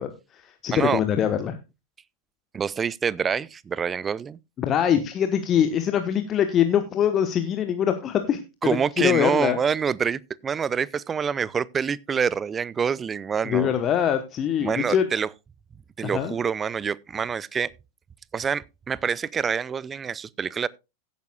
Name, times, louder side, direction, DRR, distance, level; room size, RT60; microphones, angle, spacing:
voice 1, 0.0-1.6 4.6-8.4 9.0-9.6 13.4-15.1 16.0-16.4, left 9 dB, 30° left, 1.1 m, -23 dB
voice 2, 0.7-1.0 2.5-4.4 8.6-13.7 14.6-15.3 16.0-17.7 18.3-20.7, right 6 dB, 20° right, 0.5 m, -26 dB
16.0 x 9.5 x 2.3 m
figure-of-eight pair, 90°, 0 cm